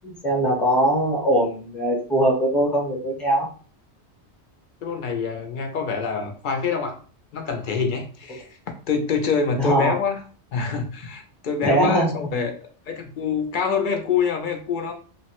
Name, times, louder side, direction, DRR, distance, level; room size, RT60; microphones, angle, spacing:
voice 1, 0.0-3.5 9.6-9.9 11.6-12.2, right 1 dB, ahead, -2 dB, 0.7 m, -21 dB
voice 2, 4.8-6.9 7.3-8.5 8.9-10.2 10.5-12.6 12.9-14.9, left 5 dB, 60° left, 4 dB, 0.6 m, -25 dB
2.9 x 2.0 x 2.8 m, 0.39 s
omnidirectional pair, 1.1 m